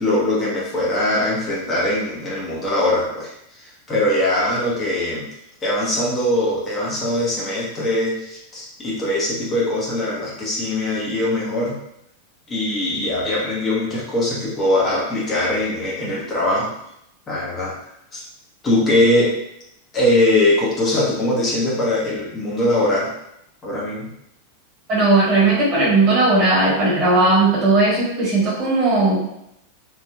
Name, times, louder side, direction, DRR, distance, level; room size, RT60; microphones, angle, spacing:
voice 1, 0.0-5.3 5.6-11.8 12.5-16.7 17.3-17.7 18.1-18.2 18.6-19.4 19.9-23.1 23.6-24.1, left 1 dB, 25° left, -6 dB, 0.9 m, -21 dB
voice 2, 24.9-29.3, right 2 dB, 40° right, -6 dB, 1.3 m, -17 dB
3.2 x 2.5 x 2.2 m, 0.78 s
figure-of-eight pair, 90°, 0 cm